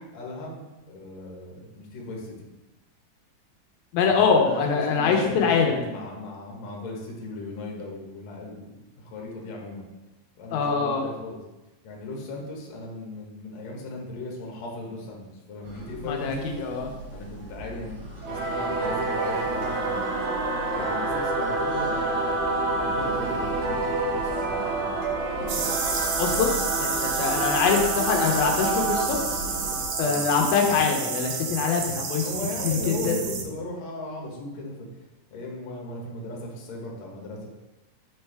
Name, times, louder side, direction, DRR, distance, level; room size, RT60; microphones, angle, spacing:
voice 1, 0.0-2.4 4.2-9.9 10.4-11.4 11.8-16.5 17.1-17.9 18.3-20.0 20.7-24.9 30.0-30.2 32.2-34.7 35.3-37.5, left 2 dB, 60° left, -1 dB, 2.1 m, -37 dB
voice 2, 3.9-5.7 10.5-11.1 16.1-16.9 26.2-26.5 26.8-29.2 30.0-32.3 32.6-33.1, left 5 dB, 90° left, 2 dB, 2.7 m, -23 dB
sound 1, 15.6-29.9, right 2 dB, 35° right, 1.5 m, -39 dB
Singing / Musical instrument, 18.2-31.1, right 2 dB, 60° right, 1.7 m, -28 dB
sound 2, 25.5-33.4, right 5 dB, 85° right, 1.5 m, -30 dB
7.9 x 4.5 x 3.3 m, 1.0 s
omnidirectional pair, 4.1 m